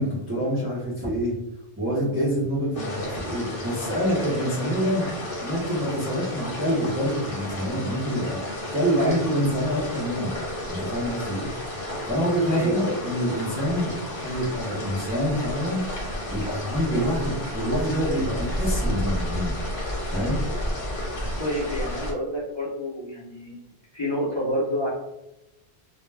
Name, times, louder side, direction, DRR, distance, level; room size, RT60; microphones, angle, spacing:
voice 1, 0.0-1.4 1.8-5.1 5.4-8.4 8.7-10.3 10.7-11.5 12.1-15.8 16.3-19.6 20.1-20.4, equal, 15° right, -7 dB, 0.5 m, -26 dB
sound 1, 2.7-22.1, left 1 dB, 55° left, 1.0 m, -32 dB
voice 2, 8.9-9.2 12.4-13.0 21.4-23.6 23.9-24.9, equal, 30° left, -8 dB, 0.6 m, -29 dB
2.2 x 2.1 x 3.2 m, 0.90 s
omnidirectional pair, 1.1 m